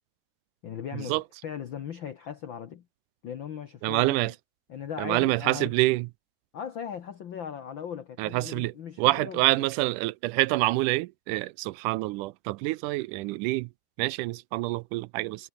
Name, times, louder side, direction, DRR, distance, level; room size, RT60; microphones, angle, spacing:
voice 1, 0.6-2.8 3.2-4.3 4.7-5.7 6.5-9.7, left 8 dB, 70° left, 1.1 m, -38 dB
voice 2, 3.8-4.3 5.0-6.1 8.2-13.7 14.0-15.5, right 19 dB, 80° right, 2.0 m, -27 dB
omnidirectional pair, 3.8 m